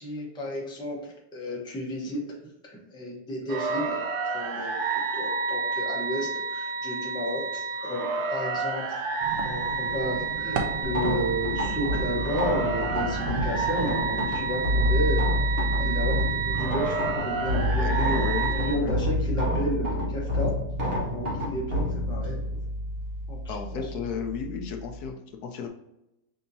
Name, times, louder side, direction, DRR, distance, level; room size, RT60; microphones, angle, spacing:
voice 1, 0.0-9.0 9.4-15.4 15.8-18.3 18.5-22.6 23.3-23.9, equal, 5° left, -3 dB, 0.3 m, -33 dB
sound 1, 3.5-18.8, right 4 dB, 65° right, 0.8 m, -30 dB
sound 2, 9.2-17.2, right 5 dB, 80° right, 1.3 m, -37 dB
sound 3, 10.8-25.1, left 1 dB, 40° right, 1.1 m, -28 dB
voice 2, 17.8-18.9 23.5-25.7, left 5 dB, 70° left, 4 dB, 1.1 m, -33 dB
6.4 x 2.8 x 2.7 m, 0.88 s
omnidirectional pair, 1.9 m